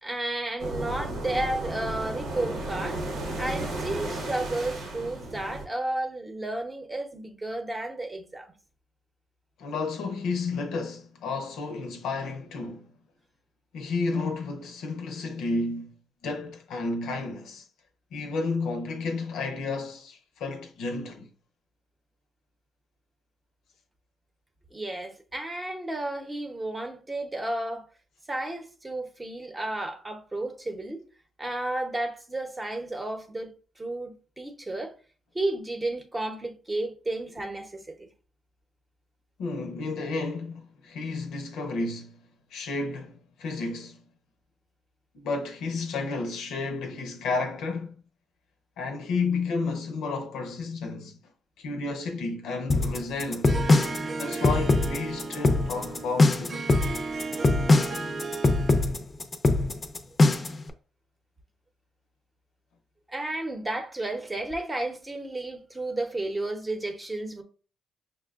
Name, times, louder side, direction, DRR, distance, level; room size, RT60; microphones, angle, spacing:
voice 1, 0.0-3.0 3.4-8.5 24.7-27.9 28.3-31.1 31.4-34.9 35.3-38.1 63.1-67.4, right 2 dB, 20° right, 0.7 m, -32 dB
sound 1, 0.6-5.7, right 2 dB, 80° right, 0.9 m, -34 dB
voice 2, 9.6-12.9 13.7-15.9 16.2-17.7 18.1-21.3 39.4-42.2 42.5-44.0 45.1-47.9 48.8-51.2 51.6-53.6 54.2-57.0, left 3 dB, 85° left, 0.6 m, -32 dB
sound 2, 52.7-60.6, left 2 dB, 30° left, 0.5 m, -22 dB
Harp, 53.5-58.9, right 4 dB, 45° right, 0.4 m, -35 dB
5.8 x 2.1 x 2.4 m
cardioid pair, 90°, 0 cm